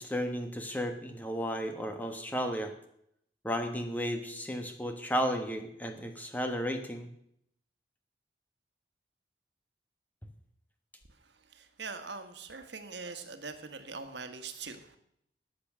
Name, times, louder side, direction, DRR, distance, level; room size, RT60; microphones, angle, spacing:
voice 1, 0.0-2.7 3.4-7.1, equal, 10° left, 5 dB, 1.3 m, -33 dB
voice 2, 11.5-15.0, right 4 dB, 90° right, 8 dB, 1.4 m, -42 dB
14.5 x 8.7 x 6.1 m, 0.73 s
head